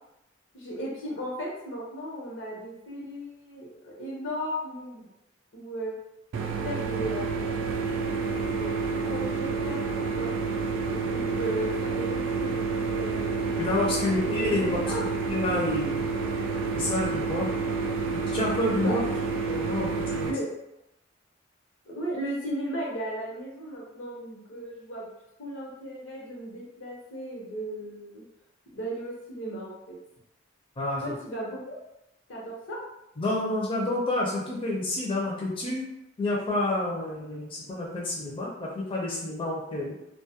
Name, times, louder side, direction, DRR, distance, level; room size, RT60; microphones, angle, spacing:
voice 1, 0.5-5.0 5.5-5.9 6.5-7.7 8.5-10.3 10.9-15.0 18.8-19.2 20.3-20.5 21.8-25.1 25.4-28.2 28.7-30.0 31.0-31.8 32.3-32.8, right 1 dB, 80° left, -3 dB, 0.8 m, -36 dB
sound 1, 6.3-20.3, right 4 dB, 85° right, 0.3 m, -29 dB
voice 2, 13.6-16.0 16.7-17.5 18.1-19.0 19.5-20.3 30.8-31.1 33.2-35.9 36.2-39.9, left 2 dB, 25° left, -5 dB, 0.4 m, -29 dB
2.3 x 2.1 x 2.7 m, 0.85 s
head